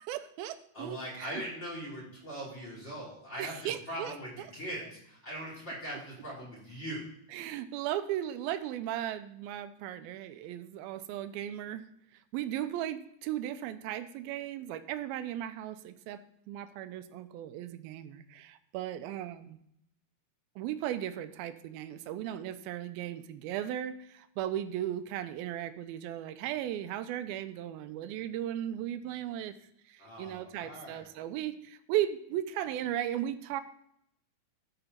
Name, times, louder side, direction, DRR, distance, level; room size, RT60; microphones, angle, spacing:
voice 1, 0.0-1.4 3.4-4.2 7.3-11.9 12.3-19.6 20.6-29.6 29.9-33.6, right 11 dB, 85° right, 11 dB, 2.5 m, -36 dB
voice 2, 0.7-7.1 30.0-31.1, equal, 20° left, -6 dB, 4.1 m, -41 dB
13.5 x 6.8 x 4.3 m, 0.74 s
omnidirectional pair, 4.3 m